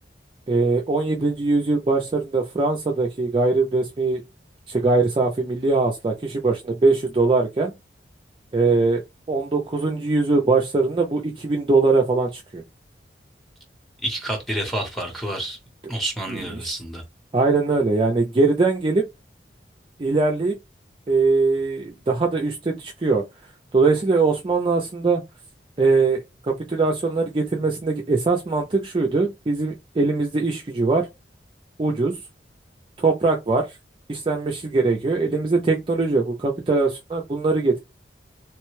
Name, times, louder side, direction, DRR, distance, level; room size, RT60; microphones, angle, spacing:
voice 1, 0.5-4.2 4.7-7.7 8.5-9.0 9.3-12.6 16.3-16.7 17.3-19.1 20.0-20.6 21.1-23.2 23.7-25.2 25.8-31.1 31.8-32.2 33.0-33.7 34.1-37.8, right 3 dB, 30° right, 0.4 m, -21 dB
voice 2, 14.0-15.6 15.9-17.0, right 1 dB, ahead, 0.8 m, -28 dB
3.1 x 2.1 x 3.0 m
head